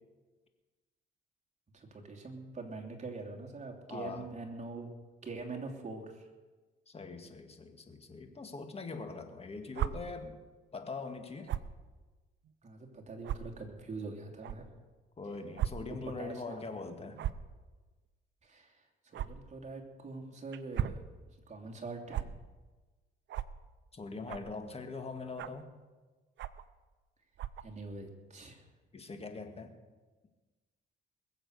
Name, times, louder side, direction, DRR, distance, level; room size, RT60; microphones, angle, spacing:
voice 1, 1.7-4.9 5.2-6.3 12.6-14.7 16.0-16.9 18.4-18.8 19.1-21.0 21.3-22.3 27.6-28.6, right 3 dB, 35° right, 2 dB, 2.9 m, -44 dB
voice 2, 3.9-4.3 6.9-10.4 10.7-11.5 15.2-17.2 23.9-25.7 28.9-29.7, left 3 dB, 30° left, 6 dB, 2.0 m, -42 dB
sound 1, 9.7-9.9 11.5-11.7 12.4-12.5 13.2-13.4 14.4-14.6 15.6-15.7 16.0-16.2 17.1-17.5 19.1-19.3 20.5-21.0 22.1-22.2 23.3-23.5 24.3-24.5 25.4-25.6 26.4-26.7 27.3-27.6, right 11 dB, 65° right, 0.7 m, -35 dB
21.0 x 7.9 x 6.6 m, 1.3 s
cardioid pair, 90°, 20 cm